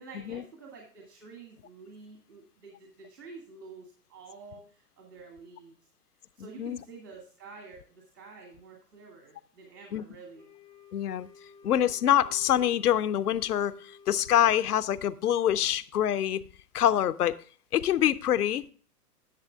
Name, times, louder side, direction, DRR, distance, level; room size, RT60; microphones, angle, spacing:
voice 1, 0.0-5.8 6.4-10.4, right 4 dB, 70° right, 2.4 m, -49 dB
Wind instrument woodwind instrument, 10.3-14.8, left 5 dB, 5° left, 0.4 m, -54 dB
voice 2, 10.9-11.3 11.6-16.4 16.7-17.4 17.7-18.7, left 11 dB, 70° left, 0.6 m, -25 dB
11.0 x 7.1 x 3.5 m
figure-of-eight pair, 115°, 48 cm